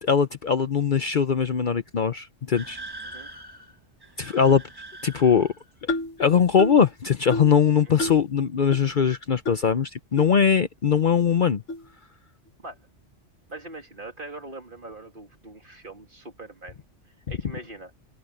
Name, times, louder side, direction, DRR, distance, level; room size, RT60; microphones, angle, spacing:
voice 1, 0.0-2.8 4.2-4.6 5.0-5.5 6.2-11.6, left 7 dB, 50° left, 0.8 m, -21 dB
sound 1, 2.5-5.7, right 1 dB, 20° right, 1.6 m, -43 dB
sound 2, 5.9-6.2 6.6-6.9 7.3-7.6 8.0-8.3 8.7-8.8 9.4-9.6 10.2-10.3 11.0-11.1 11.7-11.9, left 2 dB, 80° left, 1.6 m, -30 dB
voice 2, 13.5-16.8 17.3-17.9, right 2 dB, 45° right, 3.1 m, -41 dB
omnidirectional pair, 1.2 m